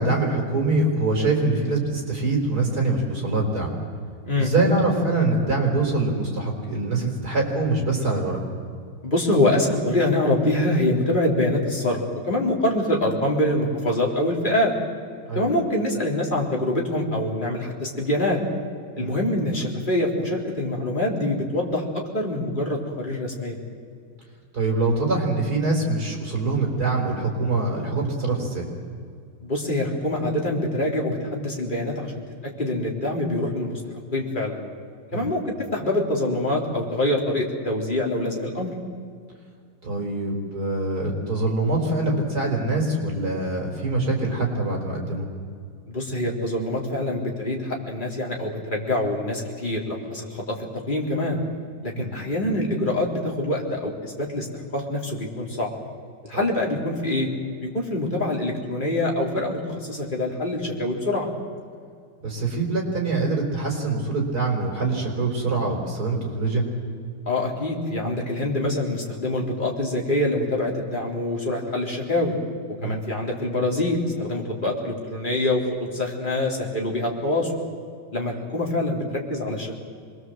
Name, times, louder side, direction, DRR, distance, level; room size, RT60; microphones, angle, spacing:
voice 1, 0.0-3.7 4.4-8.4 15.3-15.4 18.9-19.1 24.5-28.7 35.1-35.3 39.8-45.2 52.0-52.1 56.3-56.4 62.2-66.6 72.8-73.0, right 2 dB, 45° right, 0 dB, 5.0 m, -24 dB
voice 2, 9.0-14.7 15.3-18.4 19.0-23.6 29.4-32.1 32.6-33.8 34.1-34.6 35.1-38.7 45.9-50.6 50.9-51.4 51.8-54.5 54.7-55.7 56.3-57.3 57.6-61.3 67.3-72.4 72.8-77.5 78.1-79.7, left 1 dB, 20° left, -1 dB, 3.5 m, -25 dB
25.5 x 21.0 x 7.8 m, 2.2 s
omnidirectional pair, 2.3 m